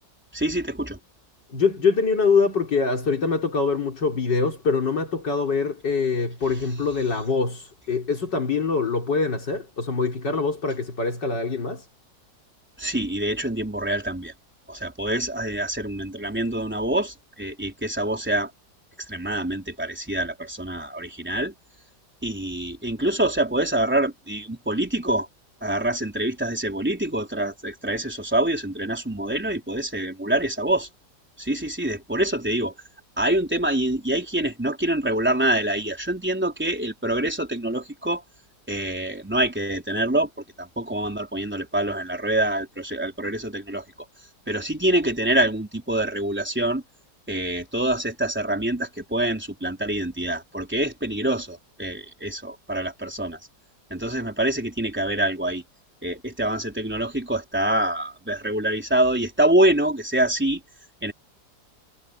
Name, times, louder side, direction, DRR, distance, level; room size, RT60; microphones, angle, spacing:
voice 1, 0.3-1.0 12.8-14.3 14.7-18.5 19.1-21.5 22.2-25.3 25.6-30.9 31.4-32.7 33.2-38.2 38.7-40.3 40.6-43.8 44.5-46.8 47.3-53.4 53.9-55.6 56.0-60.6 61.0-61.1, right 1 dB, 5° right, 3.8 m, -25 dB
voice 2, 1.5-11.9, left 4 dB, 70° left, 4.5 m, -24 dB
omnidirectional pair, 2.0 m